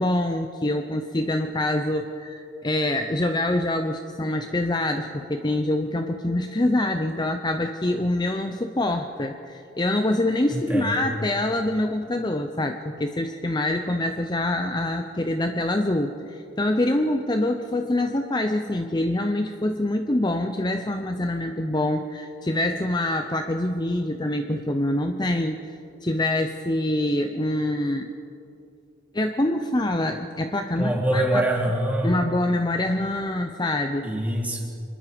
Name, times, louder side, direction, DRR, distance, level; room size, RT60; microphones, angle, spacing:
voice 1, 0.0-28.1 29.1-31.4 32.0-34.1, left 1 dB, 20° left, 6 dB, 0.7 m, -25 dB
voice 2, 10.5-11.1 30.7-32.2 34.0-34.6, right 1 dB, 10° right, -1 dB, 2.9 m, -24 dB
25.5 x 21.0 x 5.2 m, 2.6 s
head